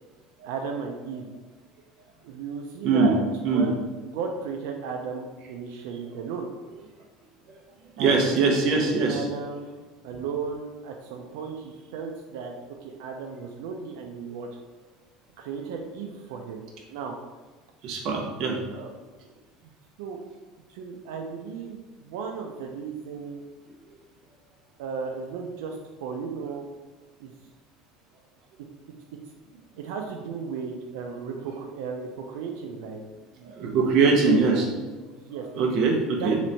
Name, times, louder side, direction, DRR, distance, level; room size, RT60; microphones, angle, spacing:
voice 1, 0.4-1.3 2.2-3.2 3.5-6.5 8.0-8.6 8.8-9.7 10.0-12.5 12.8-14.5 15.4-16.6 16.9-17.2 18.7-18.9 19.6-19.7 20.0-20.2 20.7-23.4 24.8-26.7 27.2-27.3 29.8-33.0 33.4-33.5 33.9-35.5 36.2-36.3, right 5 dB, 80° right, 2 dB, 0.4 m, -35 dB
voice 2, 8.0-9.2 17.8-18.6 33.4-34.6 35.6-36.4, right 4 dB, 45° right, 0 dB, 0.7 m, -22 dB
3.2 x 3.0 x 3.9 m, 1.2 s
cardioid pair, 170°, 0 cm